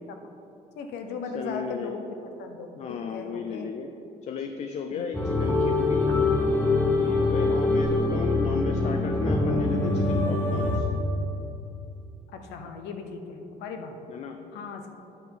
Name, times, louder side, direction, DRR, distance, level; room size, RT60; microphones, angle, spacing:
voice 1, 0.8-2.1 2.4-3.7 4.9-5.3 7.2-7.6 12.3-14.0 14.5-14.9, left 4 dB, 85° left, 5 dB, 0.8 m, -38 dB
voice 2, 1.3-1.9 2.8-3.9 4.2-6.1 6.5-10.9 14.1-14.4, left 6 dB, 40° left, 5 dB, 0.5 m, -34 dB
sound 1, 5.1-10.8, left 2 dB, 10° left, 1.1 m, -24 dB
9.1 x 4.0 x 5.7 m, 2.9 s
cardioid pair, 110°, 17 cm